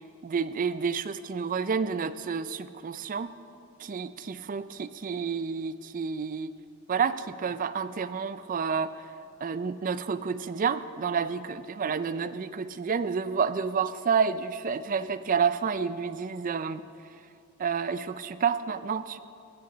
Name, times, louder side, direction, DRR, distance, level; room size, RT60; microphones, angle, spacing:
voice 1, 0.2-3.3 3.8-6.5 6.9-8.9 9.4-16.8 17.6-19.2, right 6 dB, 40° right, 14 dB, 0.4 m, -29 dB
15.5 x 13.5 x 4.0 m, 2.5 s
head